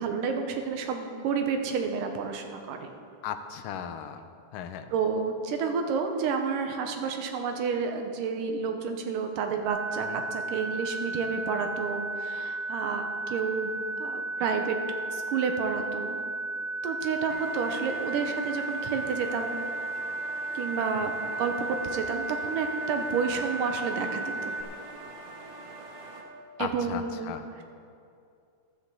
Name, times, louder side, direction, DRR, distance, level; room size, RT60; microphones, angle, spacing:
voice 1, 0.0-2.9 4.9-13.7 14.0-14.8 15.1-16.2 16.8-19.6 20.5-24.6 26.6-27.3, right 5 dB, 90° right, 5 dB, 2.6 m, -30 dB
voice 2, 3.2-4.3 4.5-4.9 10.0-10.2 21.0-21.1 26.6-27.5, left 8 dB, 85° left, 8 dB, 2.3 m, -37 dB
sound 1, 9.7-24.6, right 2 dB, 70° right, 1.6 m, -34 dB
sound 2, 17.3-26.2, right 2 dB, 50° right, 1.4 m, -44 dB
13.5 x 13.0 x 3.8 m, 2.5 s
omnidirectional pair, 3.8 m